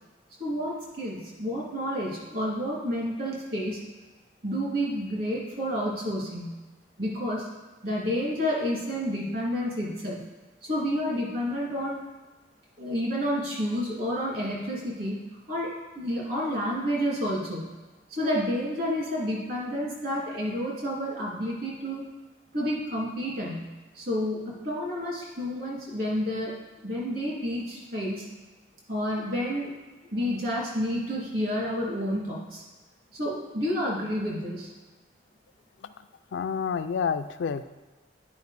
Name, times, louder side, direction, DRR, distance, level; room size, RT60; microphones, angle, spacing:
voice 1, 0.4-3.8 4.4-6.6 7.0-7.5 7.8-10.2 10.6-12.0 12.8-15.2 15.5-17.7 18.1-22.0 22.5-23.7 23.9-28.3 28.9-29.7 30.0-32.6 33.1-34.7, equal, 50° right, -4 dB, 2.4 m, -30 dB
voice 2, 36.3-37.6, left 6 dB, 65° left, 11 dB, 0.3 m, -28 dB
9.6 x 5.0 x 4.1 m, 1.2 s
head